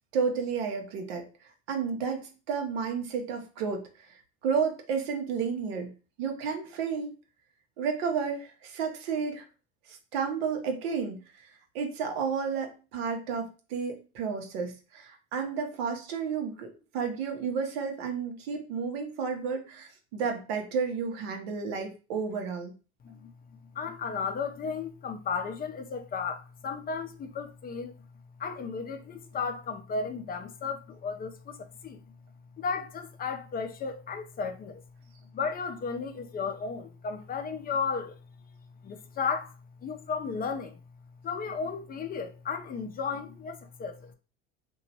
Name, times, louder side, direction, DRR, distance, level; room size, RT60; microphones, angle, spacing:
voice 1, 0.1-1.3 1.7-3.8 4.4-5.9 6.2-7.1 7.8-9.4 9.9-11.2 11.7-22.7, right 5 dB, 85° right, 0.7 m, -31 dB
voice 2, 23.7-27.9 28.4-32.0 32.6-34.8 35.3-38.2 38.8-39.5 39.8-40.8 41.2-44.1, left 5 dB, 30° left, 0.4 m, -34 dB
2.8 x 2.3 x 2.7 m
supercardioid pair, 85°, 30 cm